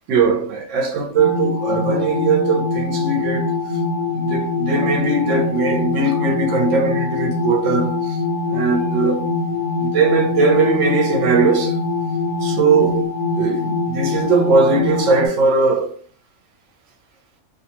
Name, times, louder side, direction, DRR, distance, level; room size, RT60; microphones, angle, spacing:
voice 1, 0.1-3.5 4.1-8.2 8.5-9.3 9.8-11.8 12.4-13.1 13.4-15.9, right 4 dB, 75° right, 1.0 m, -19 dB
sound 1, 1.2-15.3, left 4 dB, 50° left, 0.5 m, -23 dB
2.5 x 2.3 x 2.9 m
omnidirectional pair, 1.3 m